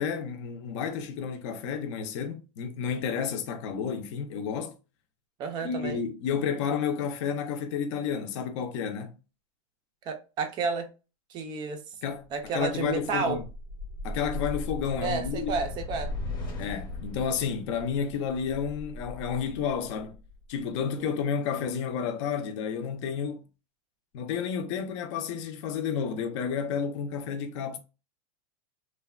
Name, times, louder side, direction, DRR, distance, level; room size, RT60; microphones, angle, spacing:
voice 1, 0.0-4.7 5.6-9.2 12.0-13.4 14.0-15.5 16.6-20.2 20.5-23.4 24.1-27.8, left 7 dB, 55° left, 0.6 m, -31 dB
voice 2, 5.4-6.0 10.0-10.9 11.3-11.8 12.3-13.4 15.0-16.1 21.0-21.1, right 5 dB, 25° right, 0.4 m, -31 dB
sound 1, 13.4-20.8, left 2 dB, 20° left, 0.8 m, -38 dB
3.1 x 2.1 x 2.3 m
supercardioid pair, 160°, 19 cm